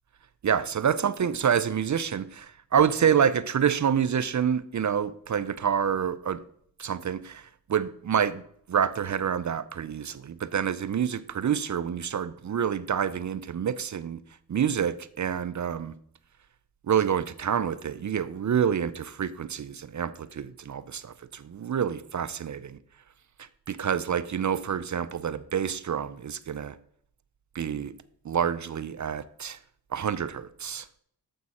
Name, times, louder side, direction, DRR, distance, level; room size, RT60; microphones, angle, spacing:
voice 1, 0.4-6.4 6.8-8.4 8.7-14.2 14.5-15.9 16.9-22.8 23.7-26.7 27.5-27.9 28.2-29.6 29.9-30.9, right 8 dB, 45° right, 0.5 m, -27 dB
9.3 x 7.4 x 4.2 m
cardioid pair, 70°, 40 cm